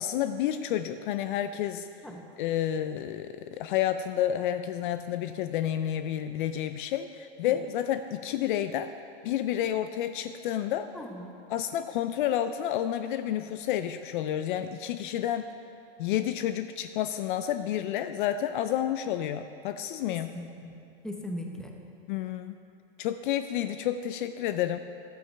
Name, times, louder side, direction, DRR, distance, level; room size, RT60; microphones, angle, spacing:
voice 1, 0.0-1.9 2.4-8.9 9.2-10.9 11.5-15.5 16.0-20.3 22.1-22.6 23.0-24.8, left 11 dB, 50° left, 10 dB, 0.5 m, -30 dB
voice 2, 10.9-11.4 20.1-20.8 21.0-21.7, left 1 dB, ahead, 1 dB, 1.0 m, -39 dB
14.5 x 11.5 x 3.4 m, 2.8 s
hypercardioid pair, 130°, 32 cm